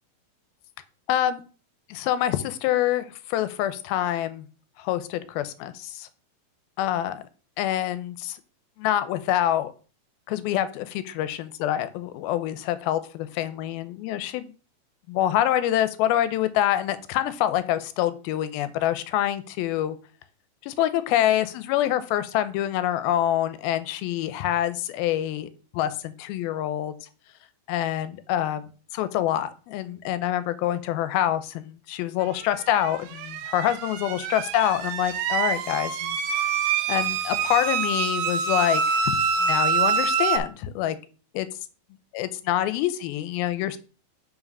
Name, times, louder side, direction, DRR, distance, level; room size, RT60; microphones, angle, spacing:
voice 1, 1.1-1.4 1.9-4.4 4.8-6.1 6.8-7.2 7.6-8.4 8.8-9.7 10.3-14.4 15.1-20.0 20.6-26.9 27.7-36.5 36.9-39.0 39.4-41.0 41.3-41.5 42.1-43.8, left 12 dB, 85° left, 12 dB, 2.5 m, -26 dB
sound 1, 32.8-40.4, right 6 dB, 85° right, 2.6 m, -26 dB
5.7 x 4.9 x 5.3 m, 0.37 s
omnidirectional pair, 4.3 m